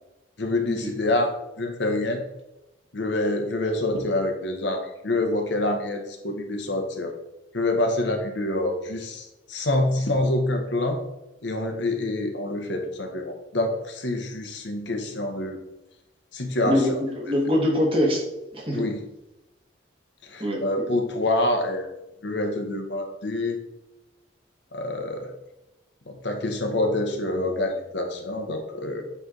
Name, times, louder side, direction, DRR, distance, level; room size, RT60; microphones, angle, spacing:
voice 1, 0.4-2.2 2.9-7.1 7.5-11.0 11.4-15.6 16.3-17.0 18.7-19.0 20.3-21.9 22.2-23.6 24.7-25.3 26.1-29.0, left 2 dB, 60° left, 3 dB, 0.9 m, -26 dB
voice 2, 16.6-18.3 18.5-18.8 20.4-20.8, left 1 dB, 30° right, -2 dB, 1.5 m, -24 dB
8.2 x 3.3 x 3.8 m, 0.95 s
head